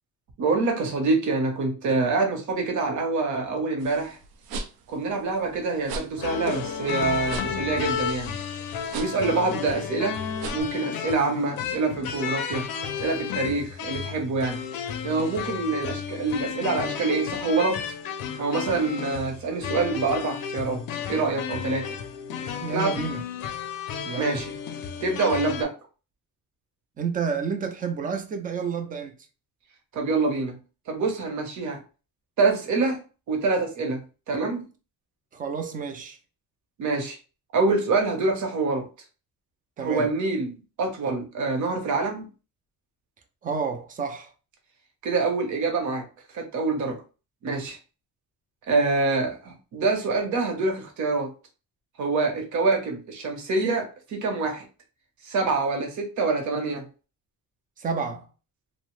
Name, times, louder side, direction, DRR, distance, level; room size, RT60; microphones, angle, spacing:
voice 1, 0.4-4.2 4.9-8.4 8.9-10.2 10.5-12.7 13.0-14.6 15.0-17.8 18.4-21.9 22.7-23.0 24.1-24.5 25.0-25.7 29.9-30.6 30.9-31.8 32.4-34.7 36.8-37.2 37.5-38.9 39.8-42.3 45.0-46.0 46.3-47.0 47.4-47.8 48.7-51.3 52.0-54.6 55.2-56.9, right 3 dB, 55° right, 0.8 m, -26 dB
sound 1, 3.8-10.6, right 3 dB, 85° right, 0.6 m, -39 dB
sound 2, 6.2-25.6, left 7 dB, 70° left, 0.5 m, -32 dB
voice 2, 22.6-23.2 24.0-24.4 27.0-29.2 35.3-36.2 39.8-40.1 43.4-44.3 57.8-58.3, right 5 dB, 25° right, 0.3 m, -30 dB
2.6 x 2.1 x 3.0 m
cardioid pair, 170°, 36 cm